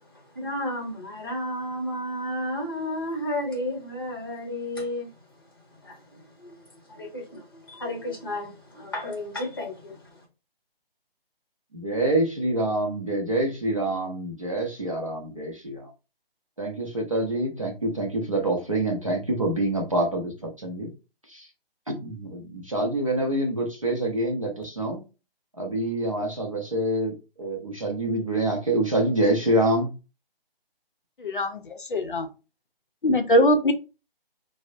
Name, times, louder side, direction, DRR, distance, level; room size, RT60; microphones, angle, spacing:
voice 1, 0.3-5.1 5.8-6.6 6.9-10.2, left 1 dB, 25° left, -1 dB, 0.9 m, -32 dB
voice 2, 11.7-15.9 16.6-20.9 21.3-21.5 21.9-25.0 25.5-29.9, right 1 dB, 35° right, 0 dB, 0.6 m, -26 dB
voice 3, 31.2-31.6 31.9-32.3 33.0-33.7, equal, 55° left, 5 dB, 0.5 m, -21 dB
3.3 x 2.0 x 2.5 m, 0.29 s
hypercardioid pair, 180°, 30 cm